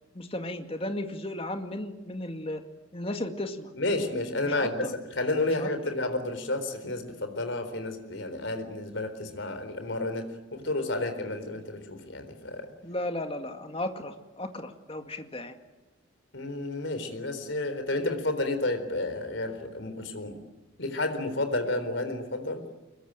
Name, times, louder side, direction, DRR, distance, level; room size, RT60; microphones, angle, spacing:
voice 1, 0.1-2.6 2.9-3.7 4.4-4.9 5.5-5.7 12.8-15.5, left 1 dB, 30° left, 6 dB, 2.1 m, -35 dB
voice 2, 3.7-12.7 16.3-20.4 20.8-22.6, left 2 dB, 70° left, 8 dB, 4.1 m, -31 dB
25.0 x 22.0 x 9.0 m, 1.1 s
head